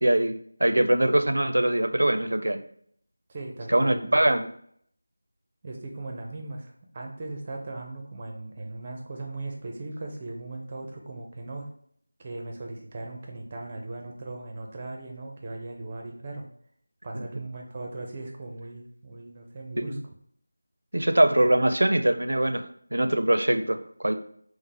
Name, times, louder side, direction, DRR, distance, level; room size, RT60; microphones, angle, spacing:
voice 1, 0.0-2.6 3.7-4.5 19.8-19.9 20.9-24.2, right 1 dB, 85° right, 9 dB, 0.4 m, -23 dB
voice 2, 3.3-4.2 5.6-11.7 12.2-16.4 17.0-20.0, right 2 dB, 25° right, 1 dB, 0.5 m, -38 dB
5.0 x 2.0 x 3.4 m, 0.64 s
figure-of-eight pair, 175°, 0 cm